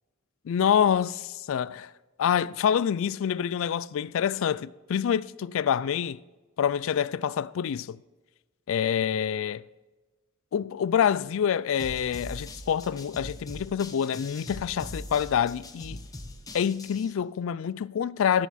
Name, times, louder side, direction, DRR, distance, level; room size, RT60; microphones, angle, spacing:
voice 1, 0.5-1.9 2.2-6.2 6.6-8.0 8.7-9.6 10.5-16.0 16.5-18.5, left 8 dB, 60° left, 0.3 m, -26 dB
sound 1, 11.8-17.1, left 1 dB, 15° left, 0.8 m, -41 dB
12.5 x 7.0 x 4.2 m
head